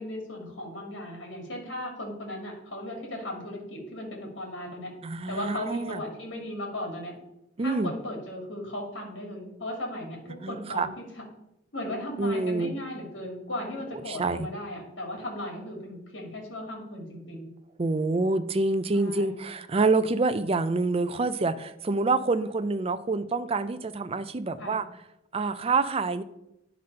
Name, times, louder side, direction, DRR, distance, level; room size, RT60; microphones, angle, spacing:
voice 1, 0.0-4.9 5.3-7.1 7.6-11.2 11.7-17.5 18.9-19.4 24.6-24.8, left 1 dB, 75° left, 0 dB, 2.5 m, -36 dB
voice 2, 5.0-6.0 7.6-7.9 10.4-10.9 12.2-12.8 14.1-14.5 17.8-24.9 25.3-26.2, right 3 dB, 30° right, 12 dB, 0.4 m, -27 dB
10.5 x 4.0 x 5.4 m, 0.86 s
head